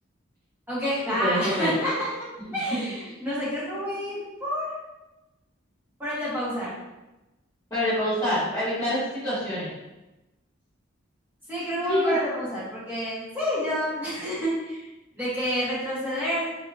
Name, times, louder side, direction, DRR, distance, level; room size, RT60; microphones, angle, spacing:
voice 1, 0.7-2.1 2.5-4.8 6.0-6.7 11.5-14.9 15.1-16.6, equal, 10° right, -10 dB, 1.0 m, -28 dB
voice 2, 1.2-1.7 7.7-9.7 11.9-12.2, left 1 dB, 15° left, -12 dB, 1.1 m, -26 dB
3.4 x 2.7 x 2.4 m, 1.0 s
head